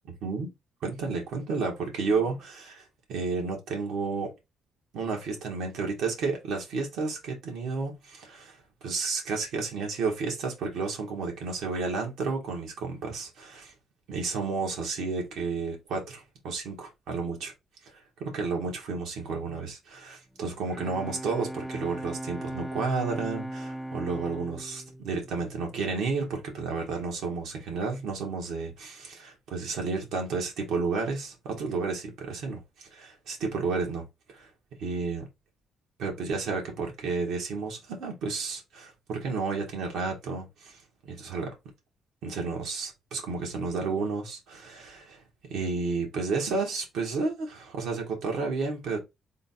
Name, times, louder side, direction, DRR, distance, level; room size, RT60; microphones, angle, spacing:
voice 1, 0.2-0.5 0.8-4.3 4.9-8.6 8.8-13.7 14.1-17.5 17.8-17.9 18.2-34.0 34.3-34.5 34.8-35.3 36.0-41.5 42.2-45.2 45.5-49.0, right 4 dB, 80° right, 1.7 m, -32 dB
Bowed string instrument, 20.4-26.2, right 1 dB, ahead, 0.4 m, -38 dB
3.8 x 2.5 x 4.2 m
cardioid pair, 90°, 0 cm